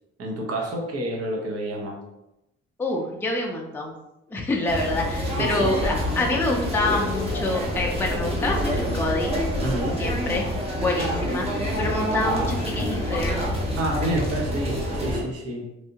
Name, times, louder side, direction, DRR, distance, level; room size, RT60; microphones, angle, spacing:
voice 1, 0.2-2.0 5.4-5.7 9.6-10.0 13.8-15.7, right 1 dB, 50° right, -1 dB, 0.9 m, -29 dB
voice 2, 2.8-3.9 4.3-9.3 9.7-10.4 10.8-13.4, left 2 dB, 5° left, 0 dB, 0.4 m, -27 dB
sound 1, 4.7-15.2, equal, 20° right, 0.9 m, -27 dB
3.2 x 2.7 x 2.8 m, 0.89 s
cardioid pair, 90°, 30 cm